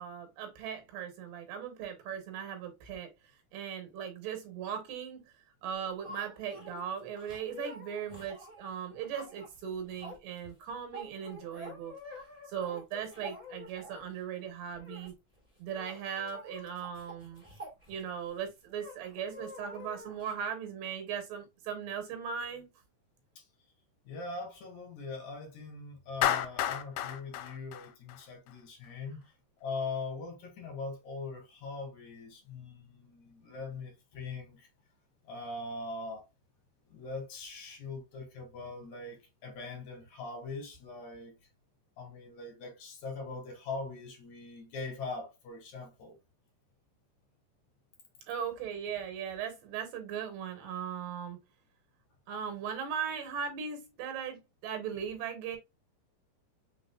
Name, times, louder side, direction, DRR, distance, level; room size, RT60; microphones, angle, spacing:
voice 1, 0.0-3.1 3.5-5.2 5.6-11.9 12.5-15.1 15.6-17.4 17.9-22.7 48.3-51.4 52.3-55.6, right 8 dB, 75° right, 2.9 m, -38 dB
sound 1, 5.7-14.2 14.7-15.1 15.4-15.5 15.7-18.3 18.8-20.3, left 1 dB, 15° right, 1.4 m, -48 dB
voice 2, 24.0-29.2 29.6-34.7 35.2-36.3 36.9-41.3 42.0-46.2, left 3 dB, 55° left, 2.4 m, -41 dB
Clapping, 26.2-28.5, left 11 dB, 85° left, 2.6 m, -31 dB
6.0 x 3.9 x 2.3 m
omnidirectional pair, 5.0 m